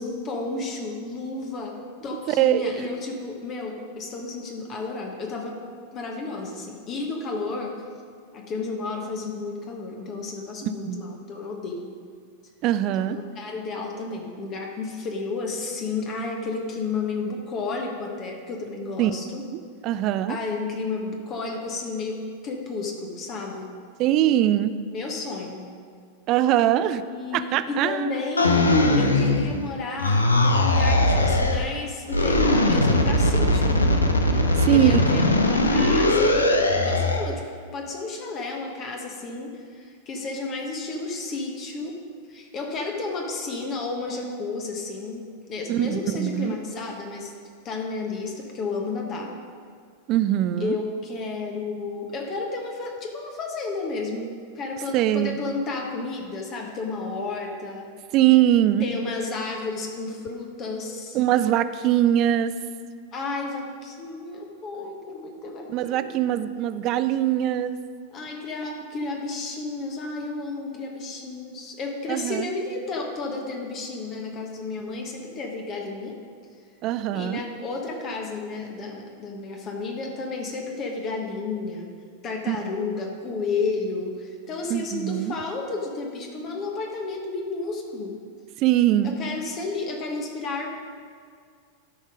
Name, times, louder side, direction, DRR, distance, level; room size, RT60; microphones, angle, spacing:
voice 1, 0.0-5.6 5.9-7.8 8.3-11.9 12.9-19.4 20.3-23.8 24.9-25.7 27.0-33.8 34.5-37.4 37.7-42.0 42.3-47.3 47.6-49.4 50.6-57.9 58.8-61.2 63.1-66.2 68.1-76.2 77.1-81.9 82.2-88.2 89.0-90.8, left 3 dB, 30° left, 1 dB, 1.2 m, -32 dB
voice 2, 2.3-2.9 10.6-11.1 12.6-13.2 19.0-19.1 19.5-20.4 24.0-24.7 26.3-27.0 27.3-28.1 34.7-35.0 45.7-46.6 50.1-50.8 54.9-55.4 58.1-58.9 61.1-62.6 65.7-67.8 72.1-72.5 76.8-77.4 82.5-82.6 84.7-85.3 88.6-89.1, right 12 dB, 40° right, 13 dB, 0.4 m, -22 dB
sound 1, 28.4-29.7 30.0-31.7 32.1-37.3, left 1 dB, 75° left, 0.8 m, -20 dB
12.5 x 5.4 x 5.0 m, 2.1 s
figure-of-eight pair, 90°, 0 cm